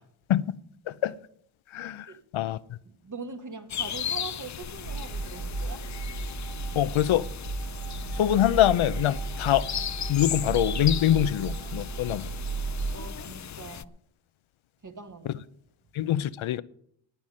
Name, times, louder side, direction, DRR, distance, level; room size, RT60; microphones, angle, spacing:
voice 1, 1.7-2.1 2.3-2.6 6.8-7.2 8.1-9.7 10.1-12.3 15.9-16.6, left 12 dB, 80° left, 0.6 m, -24 dB
voice 2, 2.8-5.9 12.9-13.9 14.8-15.4, right 4 dB, 40° right, 1.6 m, -42 dB
sound 1, 3.7-13.8, left 9 dB, 40° left, 0.4 m, -37 dB
sound 2, 4.8-13.1, right 4 dB, 90° right, 2.1 m, -34 dB
17.5 x 9.0 x 5.4 m
cardioid pair, 65°, 47 cm